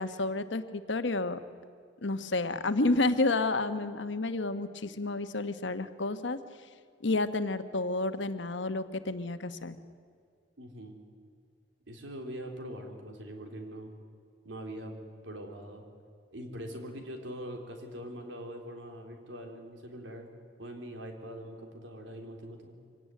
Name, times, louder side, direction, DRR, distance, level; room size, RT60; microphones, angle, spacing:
voice 1, 0.0-1.4 2.0-6.4 7.0-9.8, left 2 dB, 80° left, 10 dB, 1.2 m, -30 dB
voice 2, 10.6-11.0 11.9-13.9 14.4-15.0 15.2-15.8 16.3-20.3 20.6-22.8, equal, 85° right, 3 dB, 3.7 m, -42 dB
25.0 x 18.0 x 9.3 m, 2.2 s
head